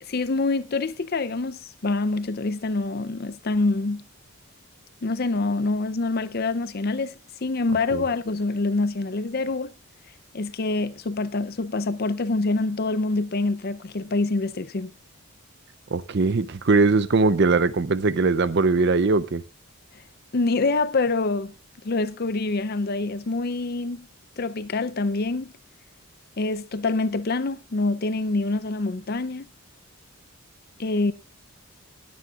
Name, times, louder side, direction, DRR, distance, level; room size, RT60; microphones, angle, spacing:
voice 1, 0.0-4.0 5.0-9.7 10.3-14.9 20.3-21.5 21.8-24.1 24.4-25.5 26.4-29.5 30.8-31.1, left 3 dB, 45° left, 0.5 m, -26 dB
voice 2, 15.9-19.4, right 3 dB, 50° right, 0.5 m, -21 dB
19.0 x 9.4 x 2.4 m
head